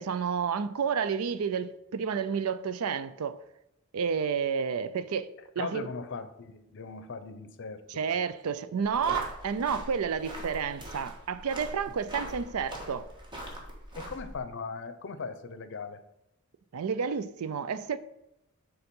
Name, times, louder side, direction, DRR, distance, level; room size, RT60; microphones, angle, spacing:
voice 1, 0.0-3.4 3.9-5.9 7.9-13.1 16.7-18.0, right 6 dB, 80° right, 0.4 m, -30 dB
voice 2, 5.6-8.3 9.1-9.2 13.9-16.0, left 4 dB, 55° left, 0.6 m, -39 dB
sound 1, 8.8-14.4, equal, 20° right, 1.5 m, -42 dB
7.0 x 3.9 x 5.4 m
head